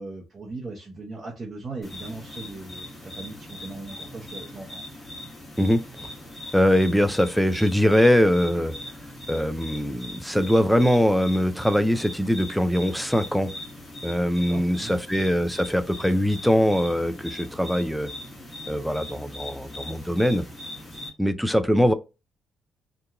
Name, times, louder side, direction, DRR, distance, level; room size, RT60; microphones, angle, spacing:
voice 1, 0.0-4.8 14.5-15.0, right 3 dB, 35° right, 0.7 m, -38 dB
sound 1, 1.8-21.1, left 1 dB, 20° left, 1.3 m, -40 dB
voice 2, 5.6-6.1 6.5-8.7 9.3-13.5 14.0-18.1 18.7-20.4 21.2-21.9, equal, ahead, 0.3 m, -22 dB
2.9 x 2.2 x 2.4 m
cardioid pair, 90°, 0 cm